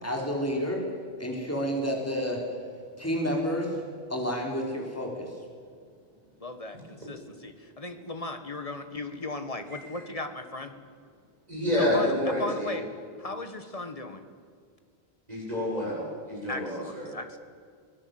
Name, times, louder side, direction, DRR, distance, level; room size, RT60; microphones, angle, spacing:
voice 1, 0.0-0.8 1.2-2.4 3.0-3.8 4.1-5.3, equal, 15° left, 0 dB, 4.0 m, -29 dB
voice 2, 6.4-10.7 11.7-12.9 13.2-14.3 16.5-17.4, left 2 dB, 35° left, 8 dB, 1.8 m, -37 dB
voice 3, 11.5-12.8 15.3-17.1, left 1 dB, 40° right, -3 dB, 7.6 m, -28 dB
24.5 x 17.5 x 7.9 m, 2.1 s
omnidirectional pair, 1.1 m